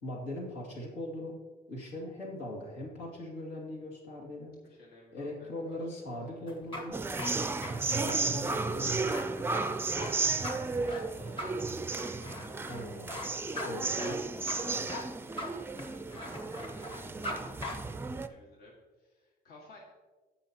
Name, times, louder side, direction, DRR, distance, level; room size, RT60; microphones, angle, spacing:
voice 1, 0.0-1.4 1.7-4.5 5.1-7.0 7.9-9.4 12.7-13.2 13.6-14.2 14.6-14.8, left 1 dB, 90° left, -2 dB, 2.3 m, -40 dB
voice 2, 4.6-5.8 6.3-6.6 10.8-11.9 16.5-17.6 17.9-19.8, left 2 dB, 65° left, -3 dB, 1.8 m, -57 dB
sound 1, 6.5-17.4 17.6-17.7, left 1 dB, 30° left, 1.6 m, -40 dB
sound 2, 6.9-18.3, right 3 dB, 15° right, 0.4 m, -34 dB
17.0 x 5.7 x 2.9 m, 1.3 s
cardioid pair, 110°, 17 cm